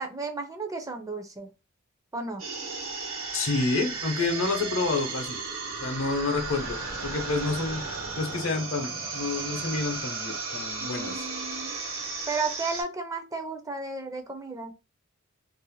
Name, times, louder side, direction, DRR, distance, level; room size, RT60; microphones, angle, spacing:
voice 1, 0.0-1.5 2.1-2.4 10.8-11.8 12.3-14.7, right 3 dB, 15° right, 0.4 m, -33 dB
sound 1, 2.4-12.8, right 4 dB, 80° right, 1.0 m, -35 dB
voice 2, 3.3-5.4 5.8-11.3, left 3 dB, 75° left, 0.7 m, -29 dB
sound 2, 4.0-10.0, right 1 dB, 50° right, 0.7 m, -48 dB
2.5 x 2.1 x 3.0 m
head